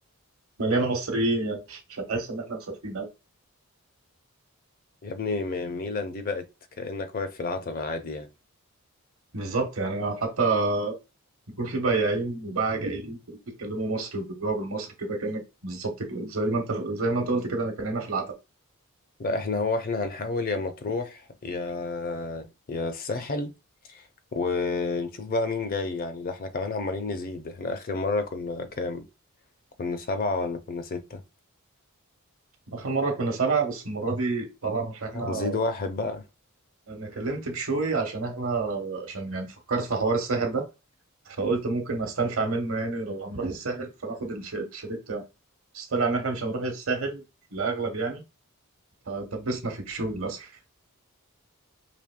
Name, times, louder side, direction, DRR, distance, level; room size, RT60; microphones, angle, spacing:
voice 1, 0.6-3.1 9.3-11.0 11.6-18.3 32.7-35.6 36.9-40.6 41.3-45.2 45.7-47.2 47.5-48.2 49.1-50.5, right 3 dB, 70° right, 1.0 m, -28 dB
voice 2, 5.0-6.5 6.8-8.3 19.2-23.5 23.9-24.0 24.3-29.0 29.8-31.2 35.1-36.2, left 3 dB, 40° left, 0.5 m, -30 dB
5.0 x 3.0 x 2.2 m
head